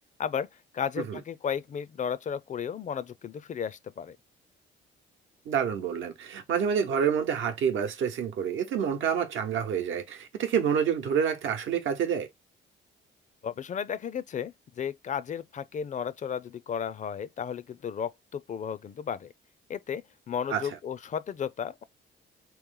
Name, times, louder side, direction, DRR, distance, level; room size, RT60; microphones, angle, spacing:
voice 1, 0.7-4.2 13.4-19.3 19.7-21.8, left 7 dB, 40° left, 0.4 m, -34 dB
voice 2, 5.5-12.3 20.5-20.6, right 7 dB, 80° right, 0.9 m, -28 dB
3.4 x 3.1 x 3.7 m
cardioid pair, 90°, 20 cm